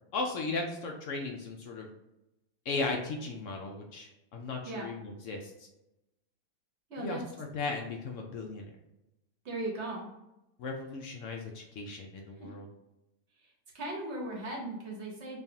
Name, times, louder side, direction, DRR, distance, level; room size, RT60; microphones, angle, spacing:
voice 1, 0.1-1.9 2.7-5.7 7.0-8.7 10.6-12.7, left 3 dB, 70° left, 1 dB, 0.8 m, -36 dB
voice 2, 6.9-7.2 9.4-10.1 12.4-12.5 13.7-15.4, right 2 dB, 55° right, -1 dB, 1.0 m, -37 dB
5.4 x 2.3 x 2.7 m, 0.93 s
omnidirectional pair, 1.6 m